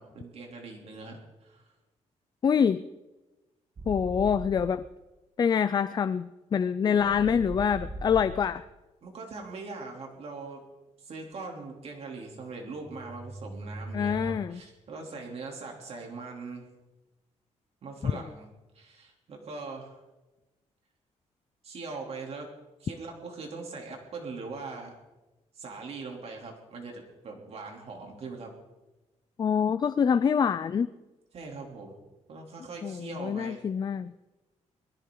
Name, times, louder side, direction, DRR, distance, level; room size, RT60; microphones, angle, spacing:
voice 1, 0.0-1.6 6.8-7.3 9.0-10.6 11.0-16.7 17.8-18.5 18.7-20.0 21.6-22.5 22.8-24.9 25.5-28.5 31.3-32.0 32.3-33.6, right 3 dB, 55° right, 0 dB, 3.3 m, -41 dB
voice 2, 2.4-2.8 3.9-4.8 5.4-8.6 13.9-14.6 18.0-18.1 29.4-30.9 32.8-34.1, left 7 dB, 35° left, 13 dB, 0.5 m, -25 dB
sound 1, 3.8-4.8 7.0-8.6 12.8-14.4, right 1 dB, 35° right, 1.6 m, -40 dB
22.0 x 14.5 x 3.9 m, 1.1 s
cardioid pair, 130°, 12 cm